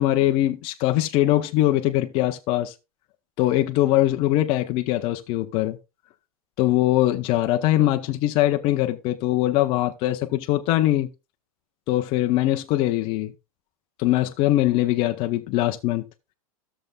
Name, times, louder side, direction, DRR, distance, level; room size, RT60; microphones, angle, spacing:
voice 1, 0.0-2.7 3.4-5.8 6.6-11.1 11.9-13.3 14.0-16.0, left 15 dB, 30° left, 0.5 m, -22 dB
13.0 x 6.7 x 2.3 m
supercardioid pair, 155°, 18 cm